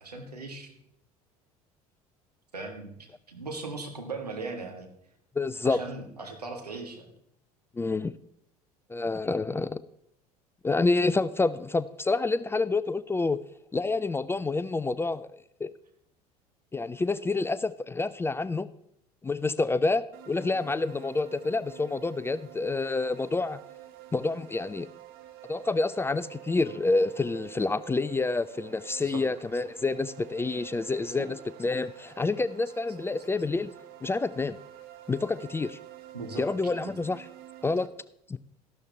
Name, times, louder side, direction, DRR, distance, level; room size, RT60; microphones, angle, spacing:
voice 1, 0.0-0.7 2.5-4.9 5.6-7.0 29.0-29.2 36.1-36.5, right 3 dB, 85° right, 3 dB, 1.6 m, -38 dB
voice 2, 5.4-5.8 7.8-8.1 8.9-9.8 10.6-13.4 13.7-15.7 16.7-18.7 19.2-23.6 24.1-24.9 25.5-33.7 34.0-34.6 35.1-35.8 36.4-37.3 37.6-37.9 38.3-38.4, left 3 dB, 10° left, 16 dB, 0.4 m, -28 dB
sound 1, 20.1-37.9, right 14 dB, 50° right, 1.1 m, -48 dB
13.5 x 12.0 x 3.3 m, 0.75 s
figure-of-eight pair, 65°, 20 cm